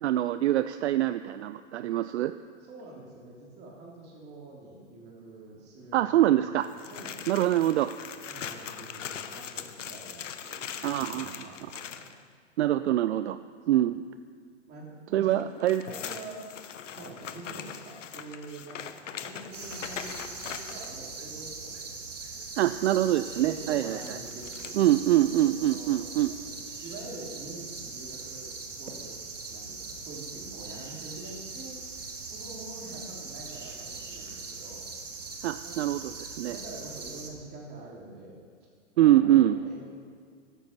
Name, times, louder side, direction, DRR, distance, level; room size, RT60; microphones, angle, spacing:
voice 1, 0.0-2.3 5.9-6.7 7.3-7.9 10.8-11.5 12.6-13.4 13.7-14.0 15.1-15.8 22.6-24.2 24.7-26.3 35.4-36.6 39.0-39.6, right 13 dB, 65° right, 12 dB, 0.5 m, -24 dB
voice 2, 2.6-6.6 6.9-7.3 8.2-12.0 14.7-15.6 15.8-16.4 16.8-21.9 22.9-29.1 29.5-34.8 35.6-35.7 36.5-38.4 38.9-39.9, right 2 dB, 25° right, -2 dB, 3.3 m, -46 dB
sound 1, 6.6-12.1 15.4-20.9 24.0-24.7, left 8 dB, 85° left, 0.9 m, -41 dB
sound 2, 19.5-37.3, right 4 dB, 90° right, 1.8 m, -41 dB
14.0 x 9.1 x 5.4 m, 2.1 s
hypercardioid pair, 125°, 36 cm